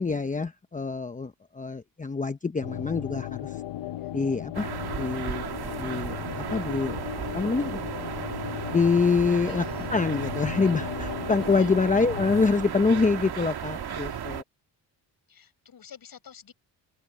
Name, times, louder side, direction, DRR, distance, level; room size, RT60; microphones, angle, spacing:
voice 1, 0.0-3.6 4.1-5.4 5.8-7.0 7.3-7.8 8.7-9.6 9.9-14.4, left 4 dB, 15° left, 1.0 m, -26 dB
sound 1, 2.6-12.5, left 14 dB, 65° left, 0.9 m, -36 dB
sound 2, 4.5-14.4, right 9 dB, 55° right, 2.1 m, -35 dB
voice 2, 9.4-9.9 11.3-11.7 14.1-14.3 15.3-16.5, left 8 dB, 50° left, 7.5 m, -49 dB
cardioid pair, 110°, 45 cm